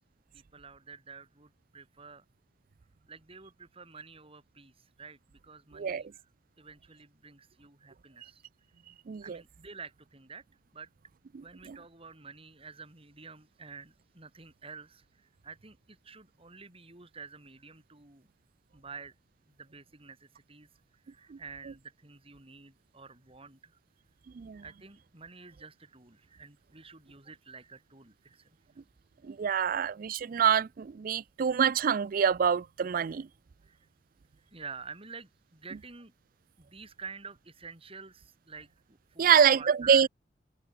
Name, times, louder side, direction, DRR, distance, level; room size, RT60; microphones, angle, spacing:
voice 1, 0.3-2.2 3.1-6.2 6.6-8.4 9.2-10.4 10.7-10.9 11.4-18.3 18.7-19.1 19.5-20.7 20.9-23.8 24.6-28.6 33.1-33.2 33.6-33.9 34.4-36.1 36.6-40.1, right 5 dB, 30° right, 3.5 m, -49 dB
voice 2, 9.1-9.4 11.7-11.8 21.3-21.4 24.3-24.6 29.2-33.3 39.2-40.1, right 7 dB, 50° right, 0.4 m, -26 dB
head